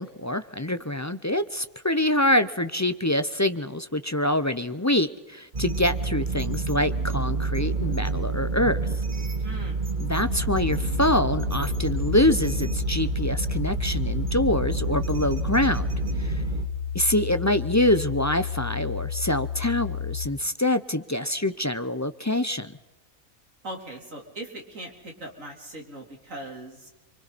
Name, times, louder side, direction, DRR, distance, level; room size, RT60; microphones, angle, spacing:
voice 1, 0.0-8.8 10.0-15.9 16.2-16.4 16.9-22.7, left 1 dB, 20° left, 11 dB, 0.5 m, -25 dB
sound 1, 5.5-16.7, right 3 dB, 35° right, 1.7 m, -28 dB
voice 2, 9.4-9.8 23.6-26.9, right 1 dB, 70° right, 0 dB, 4.1 m, -40 dB
sound 2, 10.3-20.3, left 8 dB, 60° left, 1.1 m, -32 dB
29.5 x 24.0 x 4.2 m, 1.1 s
omnidirectional pair, 1.4 m